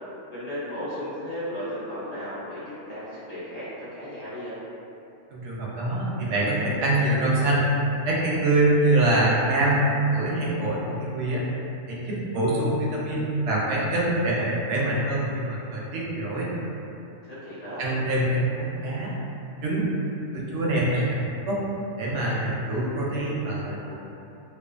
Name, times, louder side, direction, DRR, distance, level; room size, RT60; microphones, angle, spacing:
voice 1, 0.3-4.6 17.2-17.9, equal, 55° left, -11 dB, 0.4 m, -35 dB
voice 2, 5.3-7.7 8.0-9.8 10.1-11.4 11.9-16.5 17.8-19.1 19.6-19.9 20.3-21.6 22.0-24.0, right 1 dB, 65° right, -5 dB, 0.7 m, -25 dB
2.4 x 2.3 x 2.3 m, 2.8 s
omnidirectional pair, 1.5 m